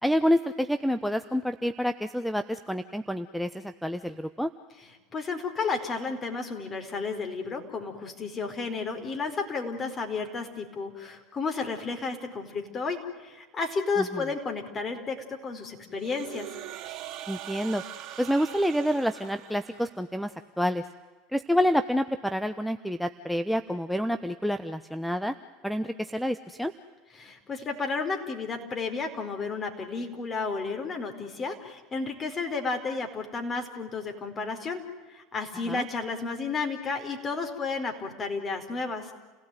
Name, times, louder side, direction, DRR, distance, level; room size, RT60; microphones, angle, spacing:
voice 1, 0.0-4.5 14.0-14.2 17.3-17.8 18.2-20.8 21.3-25.3 25.6-26.7 35.7-35.8, equal, ahead, 11 dB, 0.9 m, -28 dB
voice 2, 4.8-16.5 27.1-34.8 35.1-39.1, left 4 dB, 30° left, 5 dB, 4.6 m, -32 dB
sound 1, 16.0-20.0, right 12 dB, 45° right, 3.4 m, -42 dB
29.5 x 17.5 x 9.3 m, 1.3 s
hypercardioid pair, 85°, 0 cm